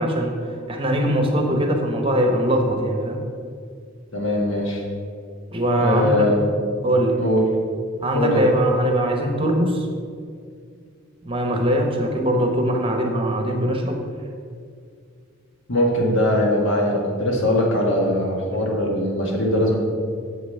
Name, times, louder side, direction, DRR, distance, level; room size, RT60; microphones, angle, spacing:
voice 1, 0.0-3.2 5.5-6.1 6.8-7.2 8.0-9.9 11.2-14.0, right 1 dB, 25° right, 3 dB, 1.0 m, -21 dB
voice 2, 4.1-4.8 5.8-6.5 7.2-7.4 8.1-8.5 15.7-19.8, left 1 dB, 65° left, -1 dB, 1.8 m, -21 dB
7.7 x 6.8 x 5.6 m, 2.2 s
head